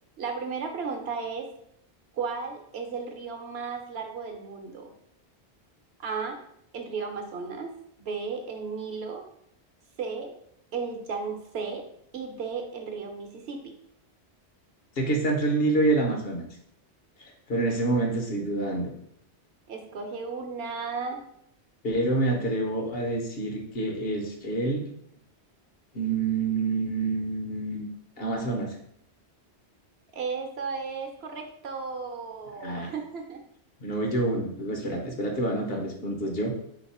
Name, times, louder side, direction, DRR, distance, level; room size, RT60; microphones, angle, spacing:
voice 1, 0.2-1.5 2.1-4.9 6.0-6.4 6.7-9.2 10.0-10.4 10.7-13.7 19.7-21.3 30.1-33.4, right 5 dB, 65° right, 4 dB, 0.9 m, -34 dB
voice 2, 15.0-16.5 17.5-18.9 21.8-24.8 25.9-27.9 28.2-28.7 32.6-32.9 33.8-36.6, right 2 dB, 60° left, 1 dB, 1.0 m, -27 dB
4.0 x 2.9 x 4.1 m, 0.74 s
omnidirectional pair, 1.2 m